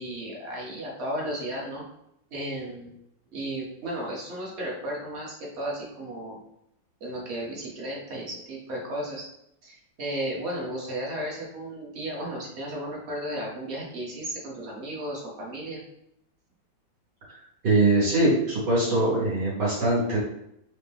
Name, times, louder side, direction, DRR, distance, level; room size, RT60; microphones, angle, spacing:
voice 1, 0.0-1.8 2.3-2.9 3.3-6.4 7.0-9.2 9.6-15.8, right 1 dB, 45° right, -3 dB, 1.0 m, -34 dB
voice 2, 17.6-20.2, right 2 dB, 65° right, -8 dB, 2.0 m, -22 dB
4.2 x 2.1 x 3.6 m, 0.77 s
omnidirectional pair, 2.0 m